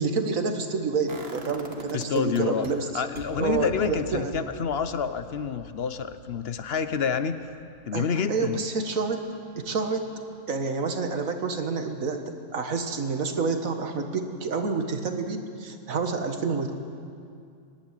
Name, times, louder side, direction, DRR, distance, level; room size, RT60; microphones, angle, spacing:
voice 1, 0.0-3.0 3.4-4.5 7.9-9.2 9.6-10.1 10.5-16.7, right 4 dB, 70° right, 6 dB, 1.9 m, -28 dB
sound 1, 1.1-2.7 3.2-9.0 9.3-9.4, right 3 dB, 45° right, 1.7 m, -44 dB
voice 2, 1.9-2.7 2.9-7.4 7.9-8.6, left 6 dB, 50° left, 11 dB, 0.9 m, -28 dB
24.5 x 11.5 x 9.1 m, 2.4 s
omnidirectional pair, 1.5 m